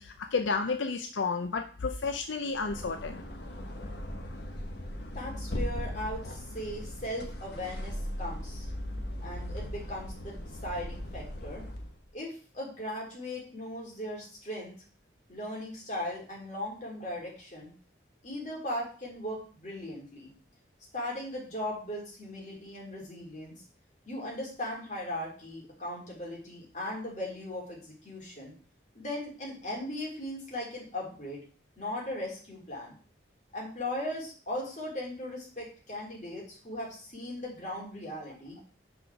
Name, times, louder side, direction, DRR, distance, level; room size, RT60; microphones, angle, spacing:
voice 1, 0.0-3.2, left 4 dB, 80° left, 7 dB, 0.6 m, -31 dB
sound 1, 2.4-12.0, left 1 dB, 60° left, 1.2 m, -38 dB
voice 2, 5.1-8.7 9.2-11.6 12.1-14.7 15.3-17.7 18.2-20.3 20.9-23.5 24.1-28.5 28.9-31.4 31.8-32.9 33.5-38.6, left 1 dB, 40° left, -3 dB, 3.0 m, -38 dB
6.1 x 5.0 x 5.9 m, 0.41 s
head